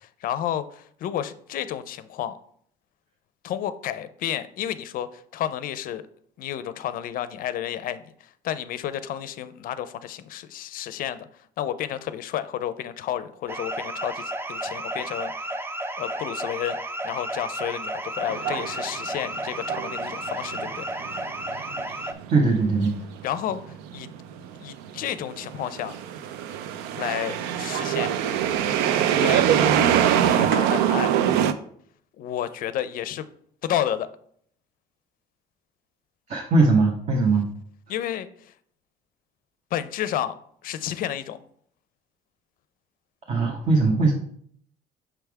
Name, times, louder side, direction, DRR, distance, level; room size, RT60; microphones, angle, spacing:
voice 1, 0.0-2.3 3.4-6.0 6.4-8.0 8.4-11.3 11.6-15.3 16.0-16.8 17.0-20.9 23.2-23.6 23.9-24.1 24.6-25.9 26.9-28.1 29.2-29.5 30.3-31.1 32.2-33.3 33.6-34.1 37.9-38.3 39.7-40.3 40.6-41.4, left 11 dB, 60° left, 14 dB, 0.5 m, -31 dB
sound 1, 13.5-22.1, right 1 dB, 15° right, 0.4 m, -32 dB
sound 2, 18.3-19.2 19.6-31.5, right 9 dB, 85° right, 0.4 m, -24 dB
voice 2, 22.3-22.9 36.3-37.5 43.3-44.1, right 3 dB, 40° right, 1 dB, 1.0 m, -20 dB
5.9 x 3.4 x 4.7 m, 0.62 s
cardioid pair, 105°, 17 cm